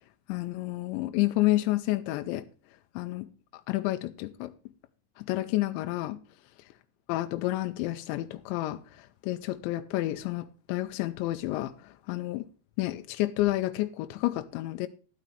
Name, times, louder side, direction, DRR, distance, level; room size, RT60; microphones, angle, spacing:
voice 1, 0.3-2.5 3.0-3.3 3.7-4.5 5.2-6.2 7.1-12.4 12.8-14.9, left 17 dB, 90° left, 3.0 m, -30 dB
12.5 x 12.0 x 3.2 m
omnidirectional pair, 5.1 m